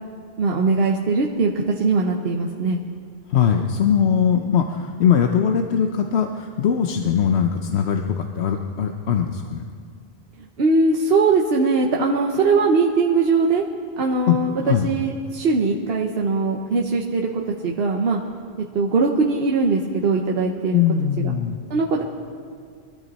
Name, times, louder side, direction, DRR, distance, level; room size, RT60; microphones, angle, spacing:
voice 1, 0.4-2.8 10.6-13.6 14.0-18.2 18.7-20.8 21.2-21.3 21.7-22.0, right 4 dB, 70° right, 0 dB, 1.2 m, -20 dB
voice 2, 3.3-9.6 14.3-14.4 14.7-14.9 20.7-21.6, left 8 dB, 90° left, 4 dB, 1.0 m, -20 dB
22.5 x 13.0 x 4.2 m, 2.1 s
omnidirectional pair, 1.1 m